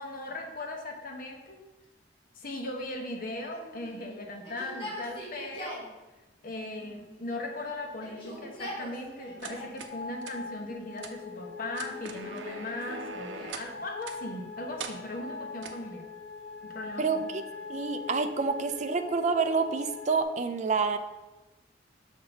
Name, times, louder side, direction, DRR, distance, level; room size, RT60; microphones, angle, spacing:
voice 1, 0.0-1.6 2.4-5.9 6.4-16.1 16.6-17.1, left 2 dB, 50° left, 1 dB, 1.0 m, -38 dB
Yell, 3.5-5.9 6.8-7.5 7.9-9.8 10.5-11.2 11.9-13.7 15.1-15.9 16.8-18.5, equal, 30° left, 1.5 m, -45 dB
sound 1, 7.7-20.2, left 5 dB, 75° left, 0.8 m, -43 dB
sound 2, 9.4-9.9 10.2-10.3 11.0-11.1 11.7-13.7 14.0-14.2 14.8-15.0 15.6-15.8, right 5 dB, 90° right, 0.6 m, -41 dB
voice 2, 17.0-17.4 17.7-21.0, right 4 dB, 40° right, 8 dB, 0.4 m, -28 dB
6.4 x 4.0 x 4.5 m, 1.1 s
head